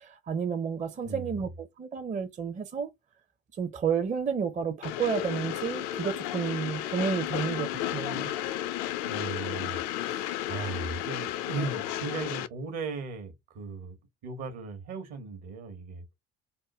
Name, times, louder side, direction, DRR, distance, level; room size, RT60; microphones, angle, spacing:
voice 1, 0.0-2.9 3.6-8.3, right 6 dB, 25° right, 0.5 m, -31 dB
voice 2, 1.0-1.4 9.0-14.0 14.2-16.1, right 4 dB, 60° right, 1.0 m, -37 dB
Train, 4.8-12.5, left 12 dB, 60° left, 0.4 m, -33 dB
3.5 x 2.1 x 2.9 m
figure-of-eight pair, 55°, 30 cm